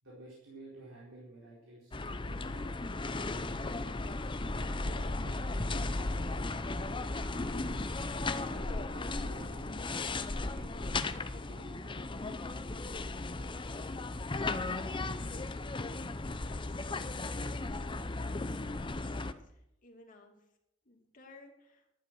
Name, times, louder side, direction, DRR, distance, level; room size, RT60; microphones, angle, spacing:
voice 1, 0.0-2.0 2.3-4.2 4.6-6.4 7.4-7.9 8.5-10.1 10.4-12.0, right 2 dB, 90° right, -6 dB, 4.4 m, -53 dB
sound 1, 1.9-19.3, left 2 dB, 25° left, 0.7 m, -36 dB
voice 2, 15.8-16.8 18.1-18.8 19.4-20.3 20.8-21.9, left 2 dB, 40° left, 0 dB, 2.8 m, -58 dB
12.0 x 10.5 x 6.2 m, 0.81 s
head